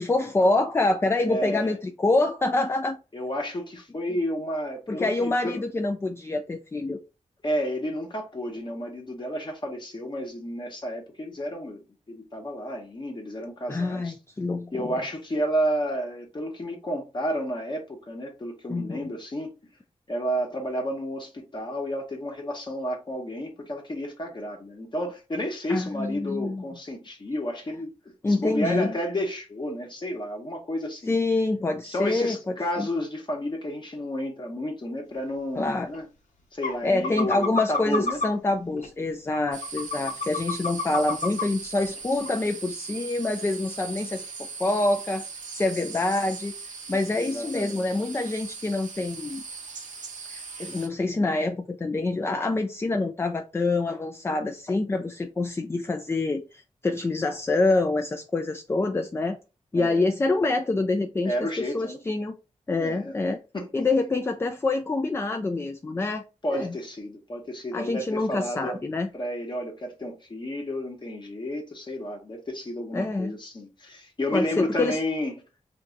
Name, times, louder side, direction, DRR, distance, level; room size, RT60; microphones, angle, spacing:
voice 1, 0.0-3.0 4.9-7.0 13.7-15.0 18.7-19.1 25.7-26.6 28.2-28.9 31.1-32.9 35.6-35.9 36.8-45.2 45.5-46.5 46.9-49.4 50.3-59.4 59.7-62.3 62.7-63.4 63.7-66.2 66.5-66.7 67.7-69.1 72.9-73.4 74.3-75.0, left 2 dB, 20° left, 0.3 m, -26 dB
voice 2, 1.3-1.7 3.1-5.6 7.4-14.1 14.7-19.5 20.1-31.1 31.8-36.1 36.5-38.2 47.1-47.9 59.7-60.0 61.2-62.0 62.8-63.2 63.5-63.7 66.4-68.8 69.1-75.4, equal, 40° left, 0.9 m, -31 dB
sound 1, 35.9-36.0 36.6-36.8 37.0-38.3 38.8-38.9 39.3-41.4 41.9-42.0 42.3-42.4, left 3 dB, 85° left, 0.9 m, -28 dB
sound 2, 39.5-50.9, right 5 dB, 85° right, 0.7 m, -39 dB
2.6 x 2.3 x 3.9 m
wide cardioid pair, 85°, 13 cm